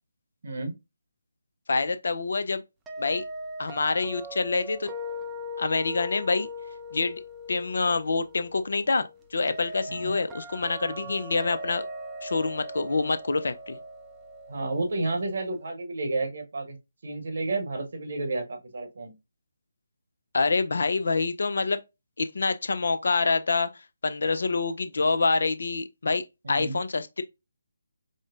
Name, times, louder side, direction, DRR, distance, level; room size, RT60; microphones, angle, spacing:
voice 1, 1.7-2.6 3.0-3.2 3.6-4.9 5.6-6.5 6.9-7.2 7.5-11.9 12.2-13.8 20.3-21.8 22.2-23.7 24.0-27.2, left 3 dB, 60° left, 0.4 m, -26 dB
sound 1, 2.9-15.7, left 1 dB, 10° right, 0.5 m, -40 dB
voice 2, 14.5-16.8 17.0-19.1 26.4-26.8, right 2 dB, 50° right, 0.9 m, -31 dB
5.0 x 2.0 x 2.4 m
figure-of-eight pair, 150°, 0 cm